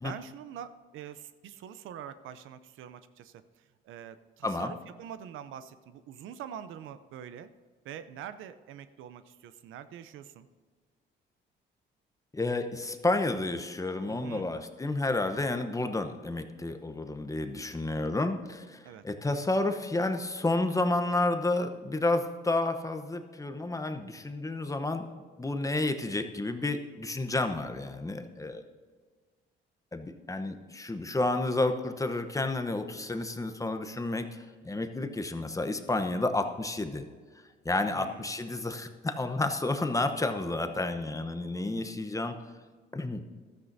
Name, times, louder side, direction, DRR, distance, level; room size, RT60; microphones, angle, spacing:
voice 1, 0.0-7.5 7.8-10.5 14.1-14.5 18.8-19.0 37.9-38.3, right 9 dB, 85° right, 12 dB, 0.6 m, -45 dB
voice 2, 4.4-4.7 12.3-18.8 19.0-25.1 25.4-28.6 29.9-37.1 37.6-42.4 42.9-43.2, left 2 dB, 15° left, 7 dB, 0.9 m, -30 dB
14.5 x 13.0 x 2.7 m, 1.5 s
cardioid pair, 90°, 20 cm